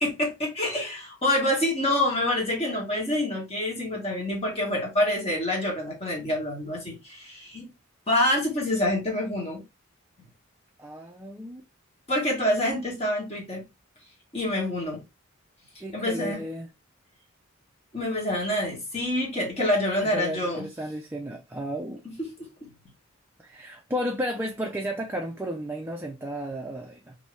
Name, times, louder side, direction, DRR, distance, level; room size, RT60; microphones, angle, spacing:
voice 1, 0.0-7.7 8.1-9.6 12.1-13.6 14.3-15.0 15.9-16.4 17.9-20.7 22.0-22.1, left 1 dB, 30° left, 1.4 m, -26 dB
voice 2, 10.8-11.6 15.8-16.7 20.0-22.0 23.4-27.2, equal, 10° right, 0.4 m, -33 dB
2.9 x 2.7 x 3.1 m
head